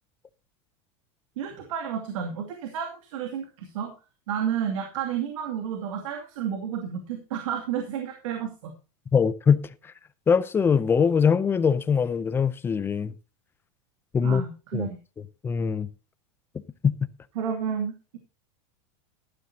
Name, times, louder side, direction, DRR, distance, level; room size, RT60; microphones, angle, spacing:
voice 1, 1.4-3.9 4.3-8.7 14.2-15.0 17.3-18.2, right 8 dB, 80° right, 2.4 m, -31 dB
voice 2, 9.1-9.6 10.3-13.1 14.1-14.4 14.7-14.9 15.4-15.9 16.8-16.9, left 6 dB, 15° left, 0.5 m, -22 dB
13.5 x 11.5 x 2.8 m
supercardioid pair, 155°, 16 cm